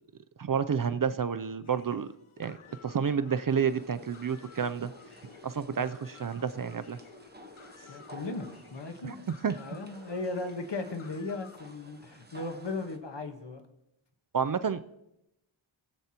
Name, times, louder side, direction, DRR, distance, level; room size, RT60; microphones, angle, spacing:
voice 1, 0.4-2.1 2.4-2.6 2.8-4.9 5.4-7.0 9.0-9.2 9.4-9.6 14.3-14.8, right 7 dB, 45° right, 13 dB, 0.4 m, -30 dB
sound 1, 1.6-11.6, left 5 dB, 85° left, 0.8 m, -53 dB
sound 2, 3.7-13.0, right 1 dB, 20° right, 1.1 m, -54 dB
voice 2, 7.9-9.2 9.6-13.6, left 3 dB, 60° left, 6 dB, 1.3 m, -37 dB
18.0 x 8.0 x 2.9 m, 0.87 s
wide cardioid pair, 75°, 48 cm